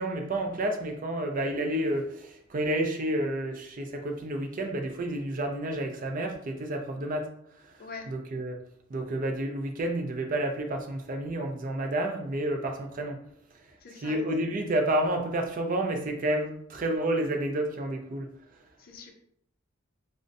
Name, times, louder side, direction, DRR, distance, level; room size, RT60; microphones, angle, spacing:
voice 1, 0.0-7.8 8.1-8.6 8.9-13.2 13.5-13.6 14.0-18.3, right 1 dB, 45° right, 4 dB, 0.4 m, -30 dB
voice 2, 7.8-8.1 13.8-14.2 18.8-19.1, left 4 dB, 50° left, 3 dB, 0.5 m, -43 dB
3.7 x 2.1 x 2.5 m, 0.69 s
head